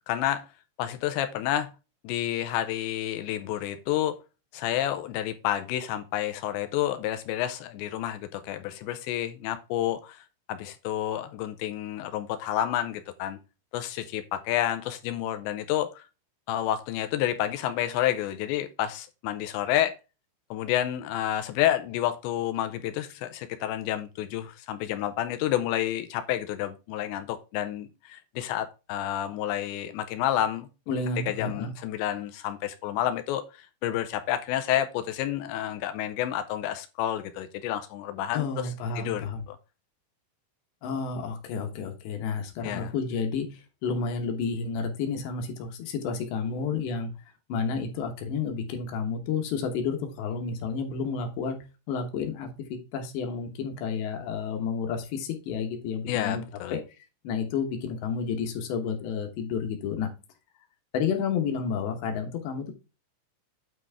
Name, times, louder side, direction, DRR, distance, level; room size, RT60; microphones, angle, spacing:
voice 1, 0.1-0.5 0.8-1.7 2.0-4.2 4.5-13.4 13.7-16.1 16.5-20.0 20.5-30.7 31.3-38.5 39.0-39.6 42.6-42.9 56.1-56.7, left 12 dB, 85° left, 2.6 m, -29 dB
voice 2, 30.9-31.7 38.3-39.5 40.8-47.1 47.5-51.6 51.9-52.5 52.9-56.4 56.7-56.8 57.2-60.1 60.9-62.7, left 5 dB, 70° left, 3.2 m, -30 dB
9.2 x 6.2 x 3.5 m
omnidirectional pair, 5.9 m